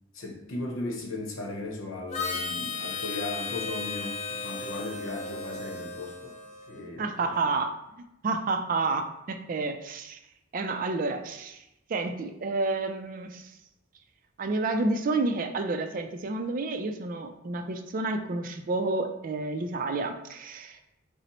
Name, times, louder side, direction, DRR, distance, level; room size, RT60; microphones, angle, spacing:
voice 1, 0.1-6.4 6.7-7.5, left 2 dB, 80° left, 0 dB, 0.8 m, -37 dB
Harmonica, 2.1-6.9, left 4 dB, 35° left, 0.5 m, -35 dB
voice 2, 7.0-7.7 8.2-10.2 10.5-11.6 11.9-13.5 14.4-20.8, right 3 dB, 45° right, 6 dB, 0.4 m, -30 dB
5.6 x 2.0 x 3.0 m, 0.87 s
head